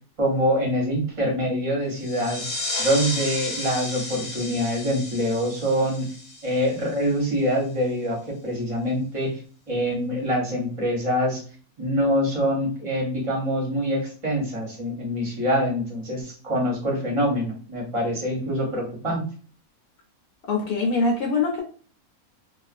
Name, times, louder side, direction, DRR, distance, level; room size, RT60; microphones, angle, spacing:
voice 1, 0.2-2.4 2.8-6.1 6.4-9.3 9.7-11.4 11.8-19.2, equal, 30° right, -2 dB, 0.6 m, -25 dB
sound 1, 2.0-7.3, left 2 dB, 50° left, 0.8 m, -33 dB
voice 2, 20.5-21.6, left 3 dB, 90° left, 1 dB, 1.1 m, -23 dB
2.4 x 2.3 x 2.4 m, 0.41 s
omnidirectional pair, 1.6 m